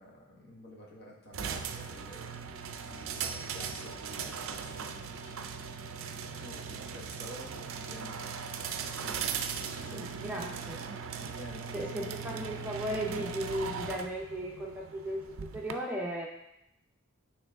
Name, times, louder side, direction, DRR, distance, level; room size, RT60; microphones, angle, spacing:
voice 1, 0.0-2.3 2.8-5.3 6.0-9.3 9.8-10.6 11.2-12.3, left 1 dB, 50° left, -2 dB, 1.3 m, -50 dB
sound 1, 1.3-15.7, right 6 dB, 75° right, 0.4 m, -39 dB
voice 2, 9.9-10.8 11.7-15.3 15.5-16.3, right 1 dB, 10° right, -2 dB, 0.6 m, -36 dB
8.7 x 3.2 x 3.5 m, 0.81 s
head